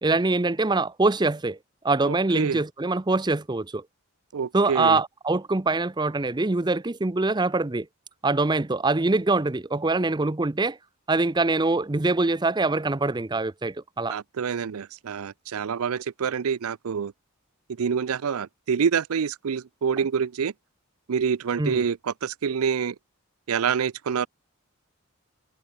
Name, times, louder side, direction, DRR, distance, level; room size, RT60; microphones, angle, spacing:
voice 1, 0.0-1.6 1.8-3.8 4.5-7.9 8.2-10.8 11.1-14.2 21.6-21.8, right 3 dB, 20° right, 0.6 m, -24 dB
voice 2, 2.0-2.6 4.3-5.0 14.1-17.1 17.8-20.5 21.1-22.9 23.5-24.3, right 6 dB, 85° right, 0.5 m, -27 dB
head